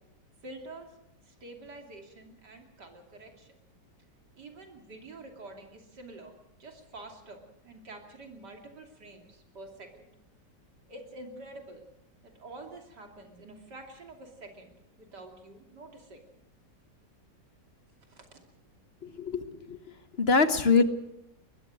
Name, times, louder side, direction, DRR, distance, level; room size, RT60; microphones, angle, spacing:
voice 1, 0.4-0.9 1.2-3.6 4.4-6.3 6.6-10.1 10.9-11.9 12.2-16.2 18.1-18.4, right 2 dB, 70° right, 3 dB, 3.3 m, -47 dB
voice 2, 19.0-19.8 20.2-20.8, left 4 dB, 40° left, 11 dB, 1.2 m, -24 dB
22.5 x 20.5 x 6.3 m, 0.83 s
omnidirectional pair, 1.9 m